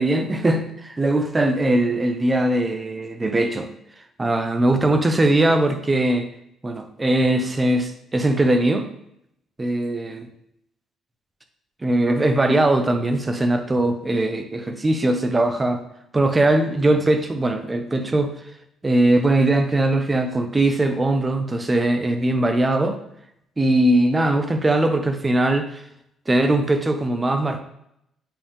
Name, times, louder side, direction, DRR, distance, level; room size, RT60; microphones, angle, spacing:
voice 1, 0.0-3.7 4.2-6.3 6.6-8.9 9.6-10.3 11.8-15.8 16.1-18.3 18.8-23.0 23.6-25.8 26.3-27.6, right 1 dB, 15° right, 7 dB, 0.5 m, -20 dB
8.6 x 3.5 x 3.5 m, 0.77 s
cardioid pair, 175°, 0 cm